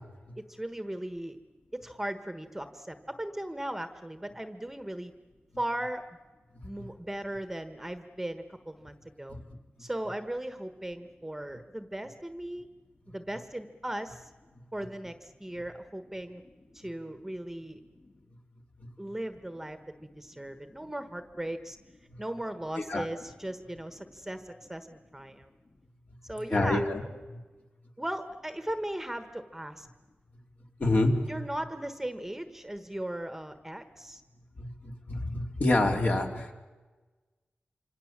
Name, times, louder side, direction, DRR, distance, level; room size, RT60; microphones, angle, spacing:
voice 1, 0.4-1.4 1.7-5.1 5.6-6.0 6.6-9.4 9.8-12.7 13.1-14.3 14.7-16.4 16.7-17.8 19.0-21.8 22.2-25.5 26.2-27.2 28.0-29.9 31.3-34.2, right 1 dB, 10° right, 9 dB, 1.3 m, -37 dB
voice 2, 26.5-27.0 27.3-27.4 30.8-31.4 34.6-36.5, left 2 dB, 45° left, 3 dB, 3.0 m, -27 dB
26.5 x 26.0 x 7.4 m, 1.3 s
wide cardioid pair, 120°, 4 cm